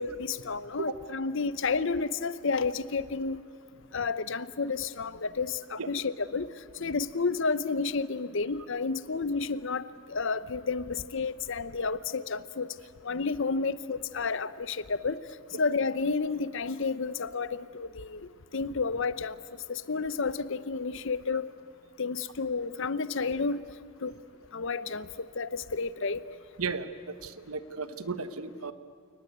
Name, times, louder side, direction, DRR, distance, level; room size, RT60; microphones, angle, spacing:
voice 1, 0.0-3.4 3.9-6.5 6.8-12.7 13.0-15.2 15.6-19.4 19.7-21.5 22.0-23.6 24.0-24.1 24.5-26.2, left 4 dB, 60° left, 15 dB, 0.7 m, -31 dB
voice 2, 26.6-28.7, right 4 dB, 80° right, 11 dB, 1.2 m, -35 dB
29.0 x 19.5 x 9.4 m, 2.1 s
head